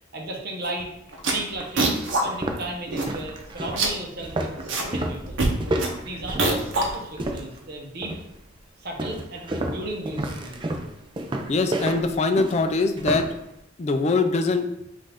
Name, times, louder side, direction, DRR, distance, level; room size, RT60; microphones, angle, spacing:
voice 1, 0.1-0.9 1.2-4.5 4.8-5.4 6.0-8.1 8.8-10.7, right 1 dB, 55° right, 0 dB, 0.9 m, -35 dB
sound 1, 0.7-0.8 1.1-2.2 2.6-2.7 2.9-3.4 3.6-4.9 5.2-7.4, right 2 dB, 80° right, 0.8 m, -25 dB
sound 2, 1.0-1.1 1.6-1.7 2.2-7.6 8.0-8.4 9.0-13.4, right 1 dB, 25° right, 0.4 m, -31 dB
voice 2, 11.5-13.3 13.8-14.7, left 3 dB, 35° left, 7 dB, 0.4 m, -22 dB
5.4 x 2.5 x 3.5 m, 0.79 s
head